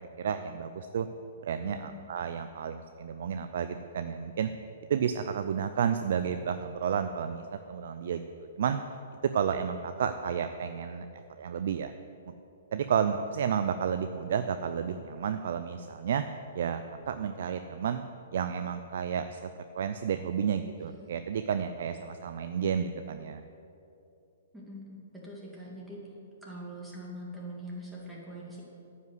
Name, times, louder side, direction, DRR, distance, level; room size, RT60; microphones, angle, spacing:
voice 1, 0.2-1.1 1.4-4.5 4.9-7.4 7.7-8.8 9.3-11.1 11.4-11.9 12.3-12.4 12.7-16.2 16.5-18.0 18.3-19.4 19.7-23.4, right 7 dB, 65° right, 9 dB, 0.4 m, -31 dB
voice 2, 24.5-26.0 26.4-28.6, equal, 5° right, -5 dB, 2.5 m, -43 dB
9.4 x 5.5 x 7.9 m, 2.7 s
hypercardioid pair, 135°, 0 cm